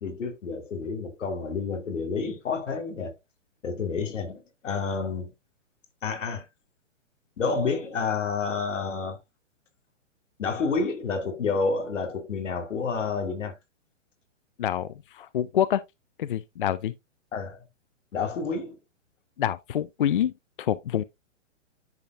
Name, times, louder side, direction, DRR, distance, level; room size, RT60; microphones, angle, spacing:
voice 1, 0.0-3.1 3.6-5.3 6.0-6.5 7.4-9.2 10.4-13.5 17.3-17.6 18.1-18.8, left 4 dB, 90° left, 2.3 m, -29 dB
voice 2, 14.6-15.8 16.2-16.9 19.4-20.3 20.6-21.0, left 10 dB, 45° left, 0.4 m, -26 dB
10.5 x 4.4 x 2.4 m
hypercardioid pair, 165°, 36 cm